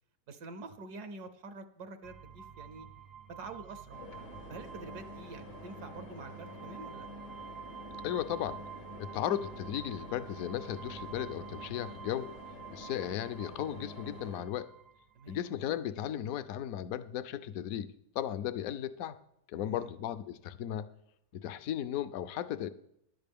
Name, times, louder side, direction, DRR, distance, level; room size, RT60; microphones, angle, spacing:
voice 1, 0.3-2.9 3.3-4.0 4.5-7.1 15.1-15.4 19.6-19.9, right 3 dB, 70° right, 9 dB, 1.3 m, -46 dB
sound 1, 2.0-15.4, right 7 dB, 50° right, 0.8 m, -49 dB
sound 2, 3.9-14.4, left 1 dB, 90° left, 2.7 m, -48 dB
voice 2, 8.0-8.6 9.0-12.3 12.7-14.7 15.3-19.2 19.5-20.9 21.3-22.7, left 11 dB, 65° left, 13 dB, 1.0 m, -36 dB
14.5 x 10.5 x 3.5 m, 0.76 s
omnidirectional pair, 1.8 m